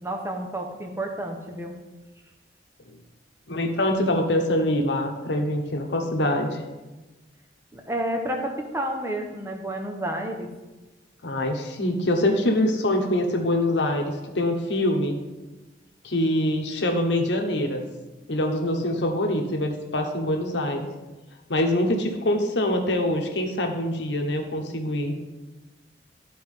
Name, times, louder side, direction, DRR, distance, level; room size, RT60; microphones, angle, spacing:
voice 1, 0.0-1.7 7.7-10.5, right 1 dB, 15° right, 2 dB, 0.9 m, -30 dB
voice 2, 3.5-6.6 11.2-15.1 16.0-17.8 18.3-20.9 21.5-25.1, left 1 dB, 75° left, 3 dB, 1.1 m, -24 dB
12.5 x 4.3 x 3.7 m, 1.1 s
head